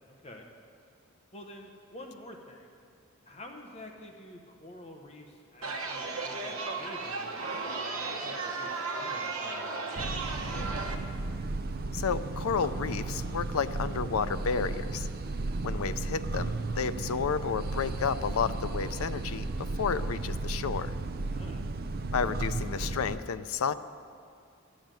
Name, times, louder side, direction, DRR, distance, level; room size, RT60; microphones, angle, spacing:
voice 1, 1.3-2.7 3.3-11.0 21.3-21.6, left 1 dB, 30° left, 2 dB, 0.9 m, -48 dB
Chatter, 5.6-10.9, right 3 dB, 80° right, 1.1 m, -35 dB
sound 1, 9.9-23.2, right 2 dB, 45° right, 0.5 m, -34 dB
voice 2, 11.9-15.1 15.6-20.9 22.1-23.7, left 6 dB, 85° left, 13 dB, 0.5 m, -31 dB
12.0 x 7.3 x 9.0 m, 2.3 s
head